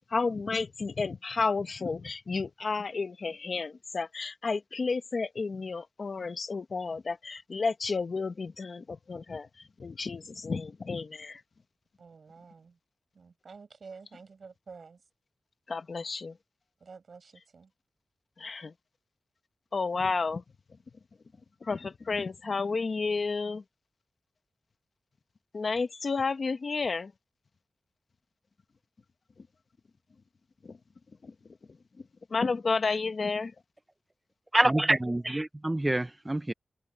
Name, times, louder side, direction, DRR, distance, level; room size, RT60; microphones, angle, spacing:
voice 1, 0.1-9.5 9.8-11.4 15.7-16.4 18.4-18.7 19.7-20.4 21.6-23.6 25.5-27.1 30.6-30.8 31.2-31.3 32.3-33.5, left 4 dB, 60° left, 1.4 m, -31 dB
voice 2, 12.0-12.8 13.1-15.0 16.8-17.7, right 5 dB, 65° right, 7.0 m, -50 dB
voice 3, 34.5-36.5, right 1 dB, 20° right, 0.5 m, -26 dB
wide cardioid pair, 85°, 0 cm